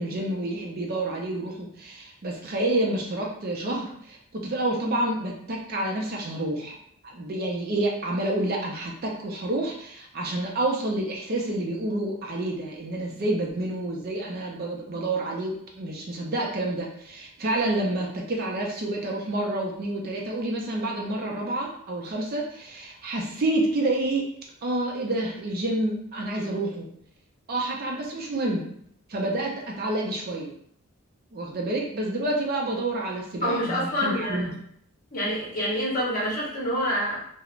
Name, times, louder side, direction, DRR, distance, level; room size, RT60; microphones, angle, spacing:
voice 1, 0.0-6.7 7.0-24.3 24.6-26.9 27.5-28.7 29.1-30.5 31.3-34.6, right 1 dB, 45° right, -1 dB, 0.5 m, -28 dB
voice 2, 33.4-34.5 35.1-37.2, equal, 40° left, -5 dB, 0.9 m, -27 dB
3.1 x 2.0 x 2.4 m, 0.66 s
head